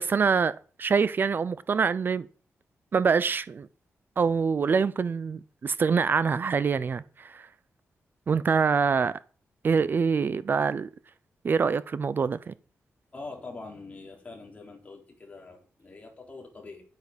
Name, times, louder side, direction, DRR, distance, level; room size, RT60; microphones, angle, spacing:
voice 1, 0.0-2.3 2.9-3.7 4.2-7.5 8.3-9.2 9.6-10.9 11.4-12.5, right 5 dB, 45° right, 0.5 m, -25 dB
voice 2, 13.1-16.8, left 3 dB, 30° left, 3.9 m, -44 dB
10.5 x 9.2 x 5.2 m
wide cardioid pair, 130°, 5 cm